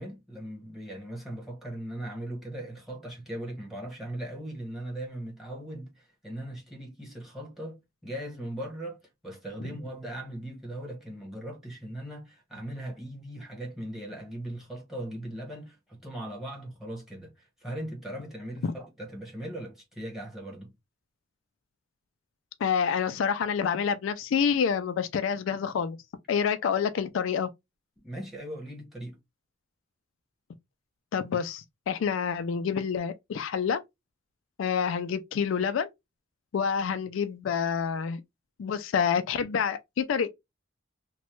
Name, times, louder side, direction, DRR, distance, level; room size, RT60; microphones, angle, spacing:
voice 1, 0.0-9.0 9.2-20.7 28.0-29.2, right 1 dB, ahead, 1.1 m, -39 dB
voice 2, 22.6-26.0 26.3-27.5 31.1-33.8 34.6-35.9 36.5-38.2 38.6-40.3, left 7 dB, 70° left, 0.3 m, -27 dB
3.0 x 2.2 x 3.0 m
head